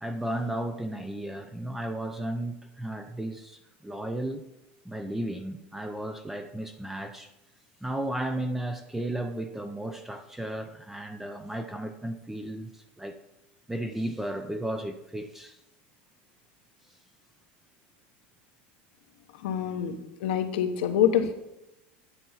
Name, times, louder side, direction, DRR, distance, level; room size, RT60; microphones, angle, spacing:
voice 1, 0.0-4.5 4.8-7.3 7.8-13.2 13.7-15.6 21.2-21.3, right 1 dB, 5° right, 0.5 m, -34 dB
voice 2, 19.4-20.0 20.2-21.3, left 9 dB, 80° left, 1.0 m, -25 dB
10.0 x 4.5 x 5.6 m
supercardioid pair, 130°, 5 cm